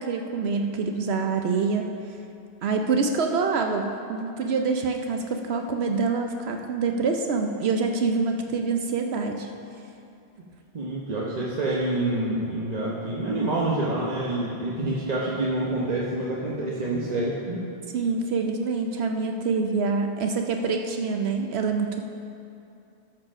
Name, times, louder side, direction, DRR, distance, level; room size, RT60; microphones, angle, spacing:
voice 1, 0.0-1.9 2.6-9.5 13.4-13.5 17.9-22.0, right 4 dB, 75° right, 4 dB, 0.9 m, -26 dB
voice 2, 10.7-17.6, right 2 dB, 40° right, -5 dB, 1.0 m, -27 dB
13.5 x 4.7 x 6.1 m, 2.6 s
omnidirectional pair, 1.1 m